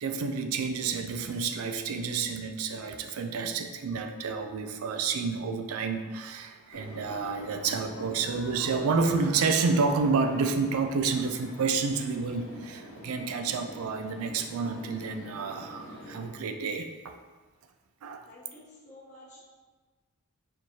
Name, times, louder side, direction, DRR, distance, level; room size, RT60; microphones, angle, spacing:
voice 1, 0.0-17.1 18.0-18.2, right 4 dB, 70° right, 6 dB, 0.4 m, -29 dB
sound 1, 6.7-16.3, equal, 60° left, 0.6 m, -46 dB
voice 2, 18.3-19.4, left 1 dB, 35° left, -7 dB, 1.2 m, -51 dB
4.3 x 3.1 x 2.7 m, 1.3 s
head